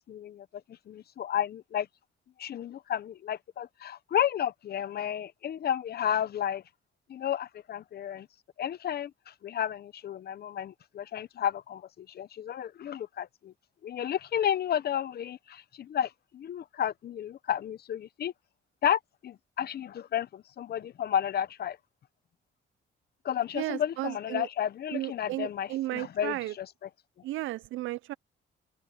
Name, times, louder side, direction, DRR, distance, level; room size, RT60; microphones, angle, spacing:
voice 1, 0.0-1.9 2.4-6.6 7.1-8.3 8.6-13.5 13.8-18.3 18.8-21.8 23.2-26.9, left 10 dB, 50° left, 0.8 m, -32 dB
voice 2, 23.5-24.5 24.9-26.5 27.2-28.1, right 16 dB, 80° right, 0.4 m, -34 dB
cardioid pair, 90°, 20 cm